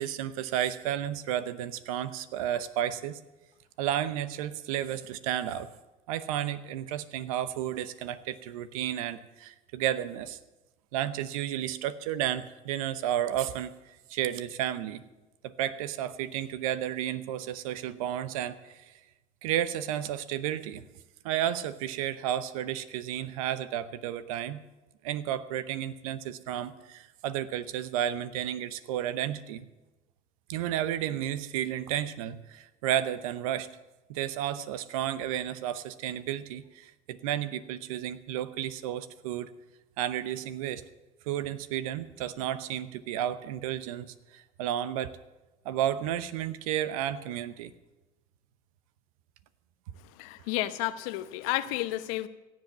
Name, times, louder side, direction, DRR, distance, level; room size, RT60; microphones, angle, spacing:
voice 1, 0.0-3.2 3.8-5.7 6.1-10.4 10.9-13.7 14.1-15.0 15.4-18.8 19.4-20.9 21.2-24.6 25.0-29.6 30.5-33.7 34.1-39.5 40.0-40.8 41.3-45.1 45.6-47.7, right 11 dB, 80° right, 14 dB, 0.9 m, -32 dB
voice 2, 50.2-52.3, left 16 dB, 75° left, 13 dB, 0.9 m, -31 dB
16.5 x 7.7 x 9.4 m, 1.1 s
hypercardioid pair, 65°, 18 cm